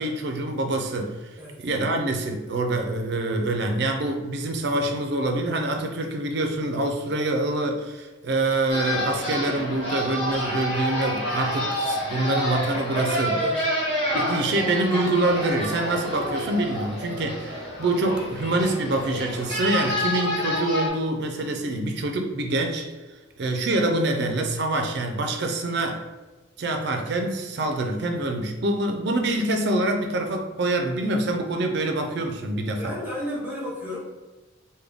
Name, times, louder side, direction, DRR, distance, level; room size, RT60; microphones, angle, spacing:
voice 1, 0.0-1.3 1.6-13.4 14.1-22.8 23.4-26.0 26.6-32.9, right 2 dB, 55° right, 4 dB, 0.4 m, -25 dB
sound 1, 8.7-20.9, equal, 30° left, 1.2 m, -28 dB
voice 2, 13.3-13.6 32.8-34.0, left 1 dB, 10° right, -5 dB, 0.9 m, -32 dB
3.6 x 2.2 x 3.4 m, 1.2 s
head